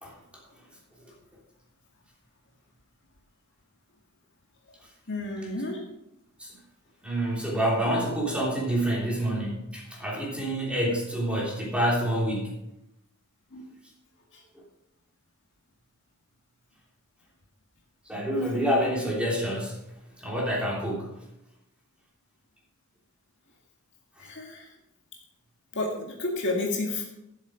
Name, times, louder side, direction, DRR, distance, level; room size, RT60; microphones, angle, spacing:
voice 1, 5.1-5.8 13.5-13.7 14.3-14.4 24.2-24.7 25.7-27.0, left 2 dB, 55° left, 0 dB, 2.1 m, -31 dB
voice 2, 7.0-12.5 18.1-19.8 20.2-21.1, right 1 dB, 5° right, -4 dB, 3.2 m, -27 dB
12.0 x 7.7 x 5.0 m, 0.85 s
head